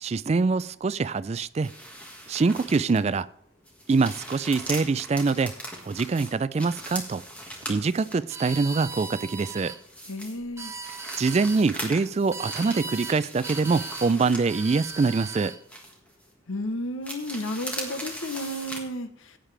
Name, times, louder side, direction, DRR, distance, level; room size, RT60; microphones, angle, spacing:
voice 1, 0.0-1.7 2.3-3.3 3.9-5.5 5.9-7.2 7.7-9.7 11.2-15.5, right 4 dB, 30° right, 16 dB, 0.3 m, -24 dB
sound 1, 1.6-3.2 3.6-8.3 8.8-10.4 10.7-15.3 15.7-16.3 17.0-18.8, equal, 5° left, 1.7 m, -40 dB
sound 2, 8.3-9.8 10.4-11.6 12.3-13.2 13.4-14.1 14.5-15.6, right 4 dB, 15° right, 0.7 m, -37 dB
voice 2, 10.1-10.7 16.5-19.4, left 1 dB, 80° left, 10 dB, 1.0 m, -32 dB
16.0 x 9.0 x 3.3 m, 0.68 s
head